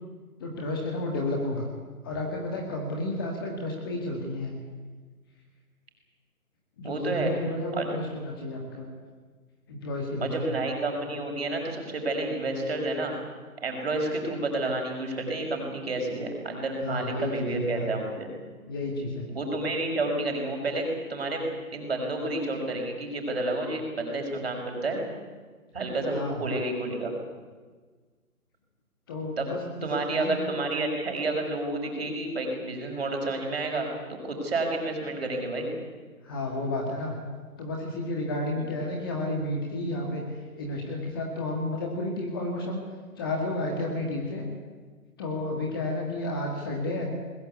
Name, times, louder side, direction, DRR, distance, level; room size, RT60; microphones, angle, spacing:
voice 1, 0.4-1.7 2.0-4.5 6.8-8.9 9.7-10.5 16.8-17.9 18.7-19.3 26.1-26.4 29.1-29.6 29.9-30.5 36.2-37.1 37.6-42.8 43.2-44.5 45.2-47.1, left 1 dB, 15° left, 0 dB, 1.9 m, -31 dB
voice 2, 6.8-7.3 7.7-7.9 10.2-13.1 13.6-18.3 19.3-21.4 21.7-25.0 25.7-27.1 29.4-29.5 29.8-35.8 38.5-38.7, right 2 dB, 40° right, 2 dB, 6.0 m, -30 dB
21.5 x 20.5 x 8.3 m, 1.4 s
figure-of-eight pair, 160°, 44 cm